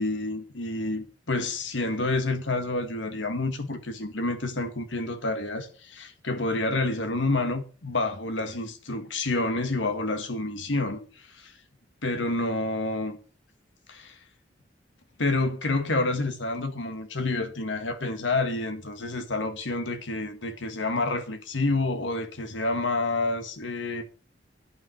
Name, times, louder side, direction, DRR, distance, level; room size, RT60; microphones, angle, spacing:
voice 1, 0.0-11.5 12.0-13.2 13.9-14.2 15.2-24.0, left 2 dB, 80° left, 1.6 m, -28 dB
11.0 x 5.9 x 7.7 m
head